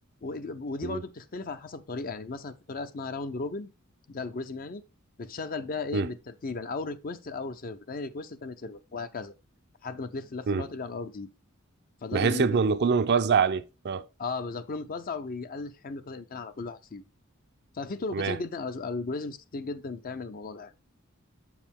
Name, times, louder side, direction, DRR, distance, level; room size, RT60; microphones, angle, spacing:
voice 1, 0.2-3.7 4.1-4.8 5.2-9.3 9.8-11.3 12.0-12.7 14.2-17.0 17.7-20.7, left 3 dB, 40° left, 0.5 m, -36 dB
voice 2, 12.1-14.0 18.1-18.4, right 5 dB, 50° right, 0.5 m, -25 dB
7.1 x 4.8 x 3.6 m
head